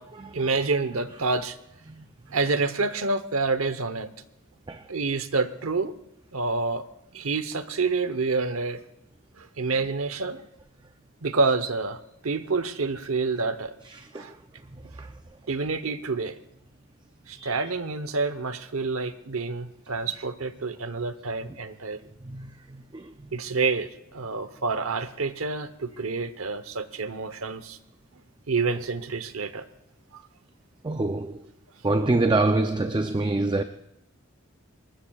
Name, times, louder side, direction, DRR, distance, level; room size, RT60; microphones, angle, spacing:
voice 1, 0.3-1.6 2.3-4.1 4.9-5.9 6.3-6.9 7.1-8.8 9.4-10.4 11.2-13.8 14.1-14.3 15.5-16.4 17.3-22.0 23.3-27.8 28.5-29.7 30.1-30.2, right 4 dB, 85° right, 1.0 m, -28 dB
voice 2, 30.8-31.4 31.8-33.6, right 2 dB, 20° right, 0.5 m, -25 dB
23.0 x 19.5 x 2.4 m
head